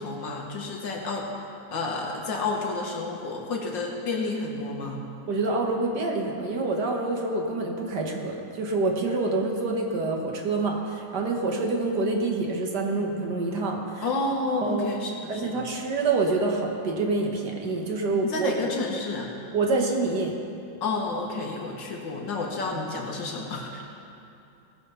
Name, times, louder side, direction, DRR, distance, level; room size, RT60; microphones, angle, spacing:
voice 1, 0.0-1.5 1.7-5.0 14.0-15.7 18.2-19.3 20.8-23.9, left 3 dB, 75° left, 0 dB, 2.2 m, -30 dB
voice 2, 5.3-14.1 14.6-14.9 15.3-18.5 19.5-20.3, right 3 dB, 60° right, 1 dB, 1.8 m, -26 dB
19.0 x 6.6 x 5.6 m, 2.8 s
omnidirectional pair, 2.1 m